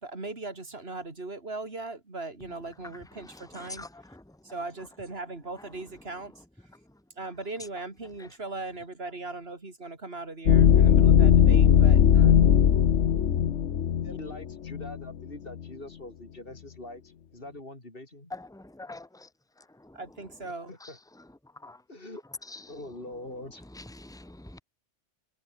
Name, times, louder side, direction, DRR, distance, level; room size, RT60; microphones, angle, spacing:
voice 1, 0.0-3.9 4.5-6.3 7.2-12.4 19.9-20.7, right 3 dB, 60° right, 4.0 m, -39 dB
voice 2, 3.2-4.2 18.3-19.1 21.6-21.8 24.1-24.6, left 2 dB, 5° left, 1.9 m, -43 dB
sound 1, 10.5-15.0, left 8 dB, 80° left, 1.3 m, -19 dB
voice 3, 14.0-18.3 20.7-21.0 21.9-22.2 22.7-23.7, left 1 dB, 50° left, 5.0 m, -43 dB
omnidirectional pair, 1.2 m